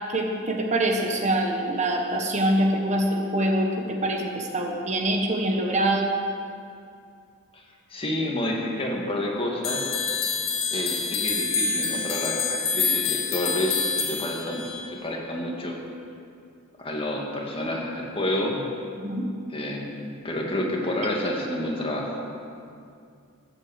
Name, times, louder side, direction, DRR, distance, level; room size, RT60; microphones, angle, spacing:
voice 1, 0.1-6.1 19.0-19.3, right 1 dB, 35° right, 2 dB, 1.1 m, -24 dB
voice 2, 7.9-9.9 10.7-14.6 14.9-15.8 16.8-18.6 19.5-22.3, left 1 dB, 25° left, -1 dB, 2.0 m, -29 dB
sound 1, 9.6-14.9, left 5 dB, 65° left, 1.7 m, -27 dB
13.5 x 9.0 x 7.3 m, 2.4 s
head